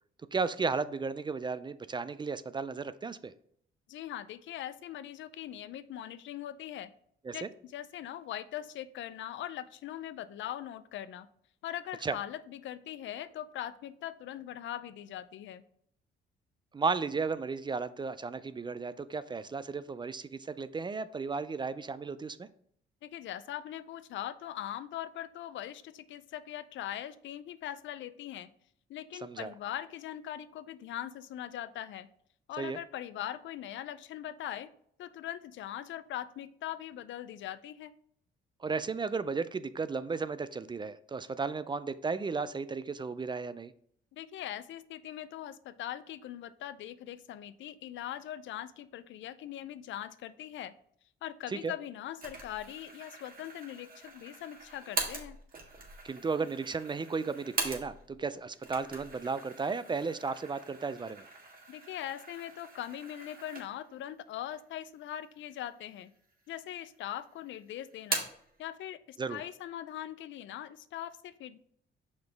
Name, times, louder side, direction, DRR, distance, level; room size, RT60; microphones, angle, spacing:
voice 1, 0.3-3.3 7.2-7.5 12.0-12.2 16.7-22.5 29.2-29.5 32.6-32.8 38.6-43.7 51.5-51.7 56.0-61.2 69.2-69.4, right 4 dB, 25° right, 14 dB, 0.3 m, -34 dB
voice 2, 3.9-6.9 7.3-11.3 11.6-15.6 23.0-28.5 28.9-32.1 32.5-34.7 35.0-37.9 44.1-50.7 51.2-55.4 61.7-66.1 66.5-68.3 68.6-71.6, left 11 dB, 70° left, 14 dB, 0.5 m, -41 dB
sound 1, 52.2-58.2 58.5-64.0 64.4-64.5 65.3-66.0 66.3-67.1 67.4-68.5, right 3 dB, 45° right, 1.7 m, -41 dB
5.9 x 5.3 x 3.4 m, 0.66 s
cardioid pair, 90°, 20 cm